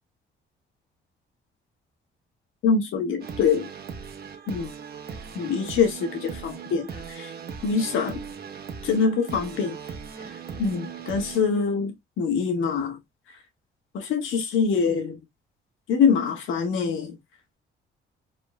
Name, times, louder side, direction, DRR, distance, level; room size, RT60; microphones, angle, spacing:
voice 1, 2.6-3.7 4.5-4.7 5.4-7.3 7.6-8.2 8.8-9.8 10.6-13.0 13.9-15.2 15.9-17.2, left 5 dB, 85° left, 1.7 m, -24 dB
sound 1, 3.2-11.6, right 6 dB, 50° right, 1.3 m, -39 dB
4.8 x 4.3 x 2.2 m
cardioid pair, 90°, 20 cm